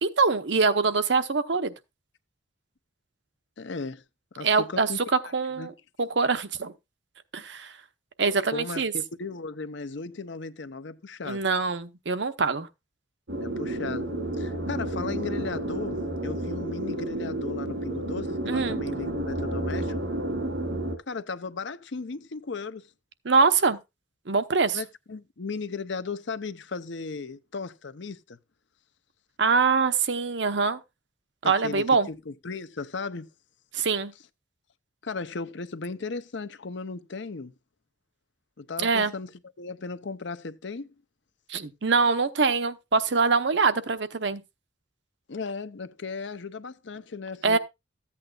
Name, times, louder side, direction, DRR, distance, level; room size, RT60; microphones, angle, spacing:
voice 1, 0.0-1.7 4.4-4.9 5.3-5.7 6.0-6.7 7.3-7.7 8.2-8.9 11.2-12.7 18.5-18.8 23.2-23.8 24.3-24.8 29.4-30.8 31.4-32.1 33.7-34.1 38.8-39.1 41.5-44.4 47.4-47.6, right 4 dB, 65° right, 0.8 m, -24 dB
voice 2, 3.6-4.0 4.4-5.0 5.6-5.7 8.5-11.4 13.4-14.1 14.4-19.9 21.1-22.9 24.7-28.4 31.4-33.3 35.0-37.5 38.6-40.9 45.3-47.6, left 4 dB, 70° left, 0.7 m, -36 dB
sound 1, 13.3-21.0, right 1 dB, 85° right, 2.4 m, -31 dB
14.5 x 8.5 x 2.4 m
head